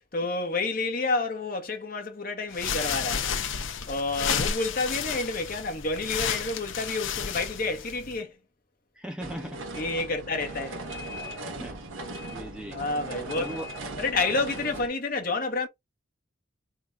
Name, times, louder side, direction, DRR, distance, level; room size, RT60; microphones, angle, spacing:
voice 1, 0.1-3.4 3.9-8.4 9.7-10.8 12.7-13.6 14.0-15.7, left 3 dB, 45° left, 1.3 m, -29 dB
sound 1, 2.5-8.2, left 7 dB, 80° left, 0.9 m, -31 dB
voice 2, 9.0-9.6 11.2-11.3 11.6-11.8 12.3-12.8 13.4-13.7 14.1-14.3, equal, 5° right, 0.8 m, -38 dB
sound 2, 9.2-14.9, right 1 dB, 85° right, 1.3 m, -38 dB
3.9 x 2.7 x 4.6 m
head